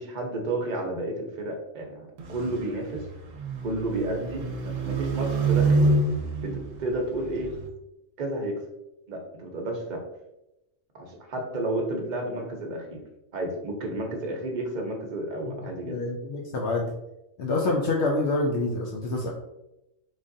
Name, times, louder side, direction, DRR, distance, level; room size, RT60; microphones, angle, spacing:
voice 1, 0.0-3.0 3.6-5.9 6.4-6.5 6.8-7.5 8.2-8.6 9.1-10.0 10.9-13.0 13.3-16.0, right 1 dB, 45° right, 1 dB, 0.7 m, -31 dB
sound 1, 2.2-7.7, right 3 dB, 85° right, 1.0 m, -27 dB
voice 2, 15.9-16.8 17.4-19.3, left 2 dB, 70° left, -1 dB, 0.8 m, -26 dB
3.9 x 3.2 x 2.6 m, 0.91 s
omnidirectional pair, 1.3 m